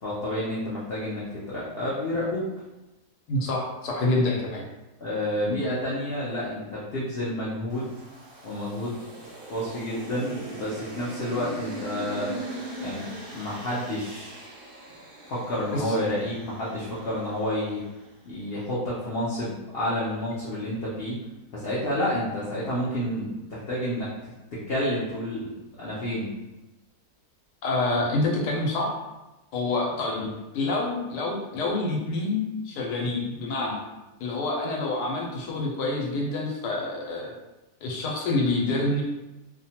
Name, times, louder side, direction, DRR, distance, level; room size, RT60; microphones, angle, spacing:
voice 1, 0.0-2.5 5.0-6.6 6.9-7.9 8.4-9.0 9.5-12.3 12.8-13.1 13.3-14.5 15.3-17.8 18.3-21.2 21.5-24.1 24.7-26.3 30.2-30.3, left 1 dB, 65° left, -8 dB, 0.6 m, -29 dB
voice 2, 3.3-4.6 5.5-5.6 15.7-15.9 27.6-28.9 29.5-30.2 30.5-33.8 34.2-37.3 37.8-39.0, left 2 dB, 80° left, -2 dB, 1.2 m, -27 dB
sound 1, 7.7-18.0, right 1 dB, 90° right, 0.5 m, -40 dB
2.7 x 2.2 x 2.8 m, 1.0 s
omnidirectional pair, 1.7 m